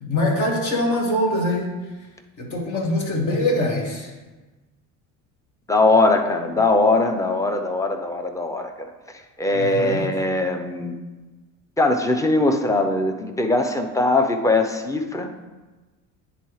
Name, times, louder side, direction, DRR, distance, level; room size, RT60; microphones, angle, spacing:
voice 1, 0.0-1.7 2.4-4.1 9.5-10.1, left 1 dB, 50° left, 0 dB, 1.6 m, -23 dB
voice 2, 5.7-8.9 9.4-11.0 11.8-15.3, left 2 dB, 10° left, 6 dB, 0.6 m, -21 dB
9.8 x 3.9 x 3.2 m, 1.2 s
supercardioid pair, 85°, 38 cm